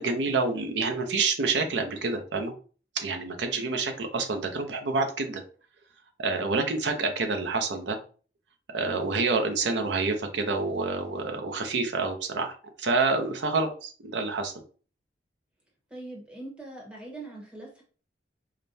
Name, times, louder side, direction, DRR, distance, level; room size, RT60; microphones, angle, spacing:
voice 1, 0.0-2.5 2.9-5.4 6.2-8.0 8.7-12.5 12.8-14.5, right 3 dB, 80° right, 5 dB, 0.7 m, -28 dB
voice 2, 15.9-17.8, right 2 dB, 5° right, -2 dB, 1.0 m, -42 dB
5.0 x 2.2 x 2.7 m, 0.40 s
head